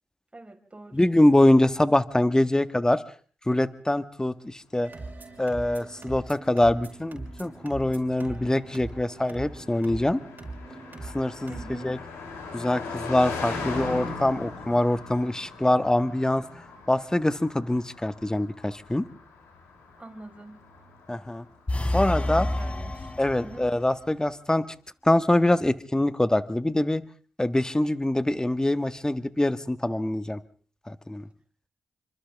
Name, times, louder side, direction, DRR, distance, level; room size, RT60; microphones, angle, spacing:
voice 1, 0.3-1.1 11.5-11.9 20.0-20.6 22.2-23.7, right 2 dB, 25° right, 5 dB, 4.9 m, -44 dB
voice 2, 0.9-3.0 3.5-4.9 5.4-10.2 11.0-11.6 11.8-12.0 12.5-16.4 16.9-19.0 21.1-21.4 21.9-22.5 23.2-24.7 25.0-27.0 27.4-30.4 30.9-31.3, left 1 dB, 15° left, 12 dB, 1.5 m, -24 dB
sound 1, 4.8-11.9, right 2 dB, 45° right, 6.2 m, -41 dB
Car passing by, 5.2-21.7, left 3 dB, 90° left, 6.7 m, -40 dB
sound 2, 21.7-23.9, left 1 dB, 30° left, 3.2 m, -29 dB
28.5 x 25.5 x 3.6 m, 0.44 s
supercardioid pair, 40°, 4 cm